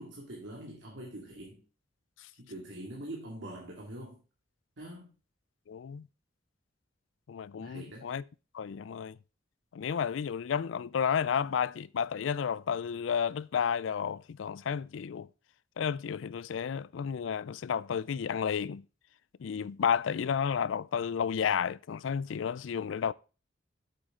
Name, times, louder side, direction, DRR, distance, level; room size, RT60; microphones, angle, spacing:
voice 1, 0.0-1.6 2.4-4.2 4.8-5.1 7.6-8.1, right 1 dB, 70° right, 2.2 m, -44 dB
voice 2, 5.7-6.1 7.3-8.2 8.5-9.2 9.7-15.3 15.8-18.8 19.4-23.1, left 7 dB, 75° left, 0.4 m, -32 dB
8.3 x 7.9 x 3.7 m
head